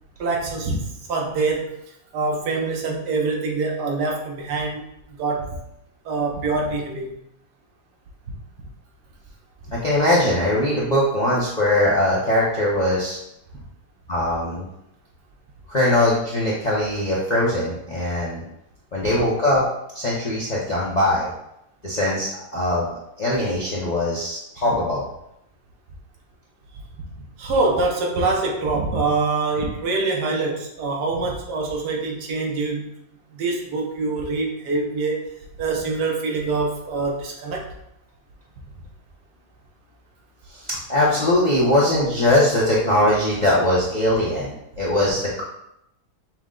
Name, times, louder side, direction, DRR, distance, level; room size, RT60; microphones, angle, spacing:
voice 1, 0.2-1.8 2.1-4.8 5.2-5.6 6.0-7.2 27.4-32.9 33.3-35.3 35.6-37.7, right 3 dB, 85° right, 0 dB, 1.4 m, -24 dB
voice 2, 9.7-13.2 14.1-14.7 15.7-18.4 18.9-19.6 19.9-21.3 21.8-25.1 40.5-45.4, left 1 dB, 40° left, -7 dB, 0.6 m, -21 dB
5.8 x 2.1 x 3.7 m, 0.80 s
omnidirectional pair, 1.7 m